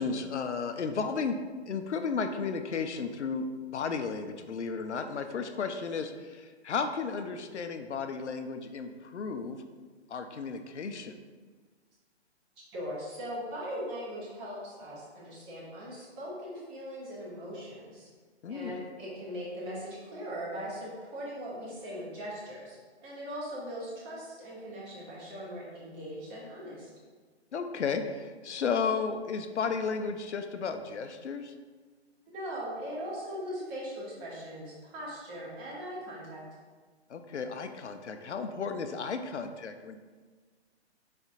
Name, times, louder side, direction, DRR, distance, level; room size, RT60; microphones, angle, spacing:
voice 1, 0.0-1.4 1.7-9.6 10.1-11.2 18.4-18.9 27.5-31.5 37.1-40.0, left 5 dB, 80° left, 7 dB, 0.5 m, -33 dB
voice 2, 12.7-18.1 18.5-26.9 32.3-36.4, equal, 15° right, -5 dB, 0.8 m, -40 dB
4.2 x 4.0 x 2.4 m, 1.5 s
figure-of-eight pair, 130°, 34 cm